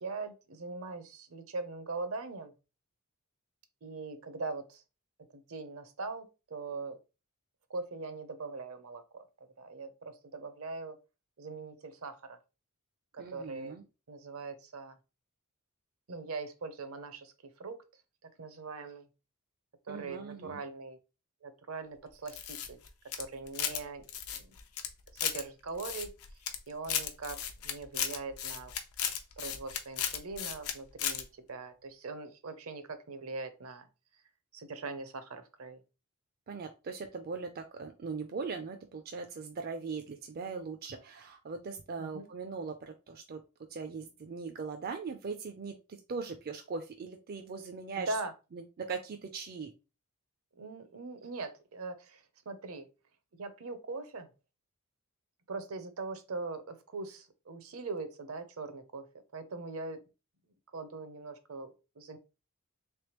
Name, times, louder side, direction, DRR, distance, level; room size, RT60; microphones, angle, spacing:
voice 1, 0.0-2.5 3.8-4.8 5.3-7.0 7.7-9.3 9.6-11.0 11.4-12.4 13.1-13.8 14.1-15.0 16.1-17.8 18.4-19.1 19.9-21.0 21.4-22.8 23.2-24.0 24.3-24.5 25.2-26.1 26.7-28.7 29.4-33.9 34.5-35.8 42.0-42.3 48.0-48.3 50.6-52.9 53.4-54.3 55.5-59.1 59.3-60.0 60.7-62.2, right 3 dB, 70° right, 10 dB, 0.7 m, -41 dB
voice 2, 13.2-13.8 19.9-20.6 36.5-43.4 43.7-48.2 48.5-49.7, right 5 dB, 45° right, 5 dB, 0.4 m, -40 dB
sound 1, 22.3-23.8 24.1-25.4 25.8-26.6 26.8-30.7 31.0-31.2, left 9 dB, 85° left, 0.6 m, -35 dB
3.4 x 3.4 x 2.9 m, 0.29 s
head